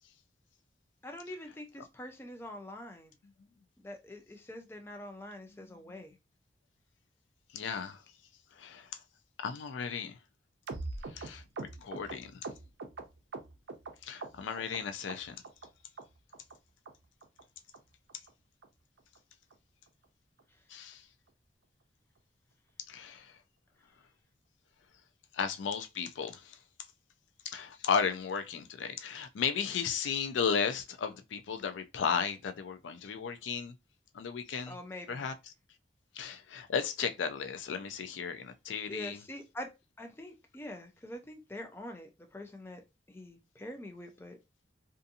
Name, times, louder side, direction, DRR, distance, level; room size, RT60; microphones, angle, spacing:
voice 1, 1.0-3.1 3.8-6.1 34.7-35.3 38.9-39.7 40.0-42.8 43.1-44.4, left 1 dB, 15° left, 0.4 m, -45 dB
voice 2, 7.5-8.0 8.6-8.9 9.4-10.2 11.1-12.4 14.0-15.4 20.7-21.0 22.9-23.4 25.3-26.6 27.5-33.7 34.1-34.8 35.1-35.3 36.1-39.2, left 6 dB, 90° left, 0.4 m, -35 dB
sound 1, 10.7-13.9 14.2-14.8 15.1-15.7 16.0-16.1 16.3-16.6 16.9-17.0 17.2-17.4 17.7-17.8 18.1-18.3 18.6-18.7 19.0-19.2 19.5-19.6 19.9-20.1 20.4-20.5, right 3 dB, 70° right, 0.5 m, -42 dB
2.5 x 2.5 x 2.6 m
head